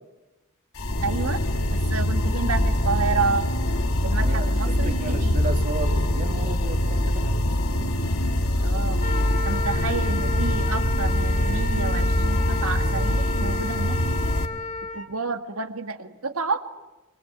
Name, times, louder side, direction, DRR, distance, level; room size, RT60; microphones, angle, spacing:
sound 1, 0.7-14.5, left 1 dB, 75° left, 2.1 m, -23 dB
voice 1, 1.0-1.4 1.9-3.5 4.0-5.4 8.6-9.0 9.4-14.0 14.9-16.6, right 4 dB, 75° right, 8 dB, 1.9 m, -29 dB
voice 2, 4.2-7.9, right 2 dB, 40° right, 6 dB, 2.5 m, -35 dB
Wind instrument woodwind instrument, 9.0-15.1, left 3 dB, 35° left, 1.6 m, -33 dB
25.5 x 24.5 x 9.0 m, 1.1 s
head